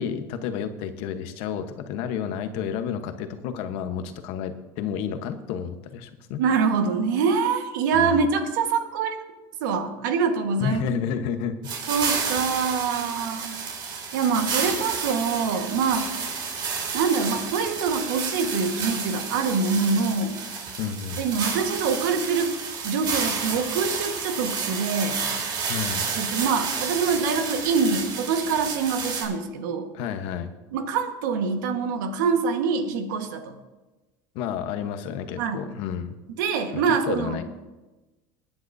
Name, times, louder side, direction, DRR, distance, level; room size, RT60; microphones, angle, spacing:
voice 1, 0.0-6.4 7.9-8.2 10.6-11.7 20.8-21.2 25.7-26.1 29.9-30.5 34.3-36.2 36.7-37.5, left 8 dB, 70° left, 8 dB, 1.1 m, -31 dB
voice 2, 6.4-9.1 9.6-10.8 11.9-13.5 14.1-16.1 16.9-20.4 21.2-22.5 22.8-25.2 26.1-29.9 30.7-33.5 35.4-35.7 36.4-37.4, right 5 dB, 85° right, 6 dB, 1.5 m, -25 dB
sound 1, 11.6-29.3, right 5 dB, 50° right, 3.6 m, -31 dB
20.5 x 9.4 x 2.7 m, 1.1 s
supercardioid pair, 110°, 10 cm